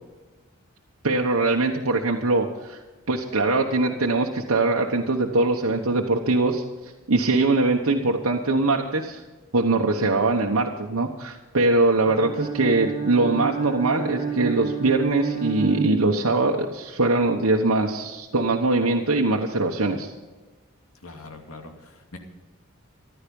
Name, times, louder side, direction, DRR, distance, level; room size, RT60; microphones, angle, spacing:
voice 1, 1.0-2.8 3.1-6.6 7.1-9.2 9.5-20.1, right 2 dB, 85° right, 0 dB, 1.2 m, -22 dB
Bowed string instrument, 12.0-16.6, right 6 dB, 20° right, 1.7 m, -30 dB
voice 2, 21.0-22.2, left 2 dB, 85° left, 4 dB, 2.5 m, -42 dB
15.0 x 12.0 x 5.4 m, 1.2 s
head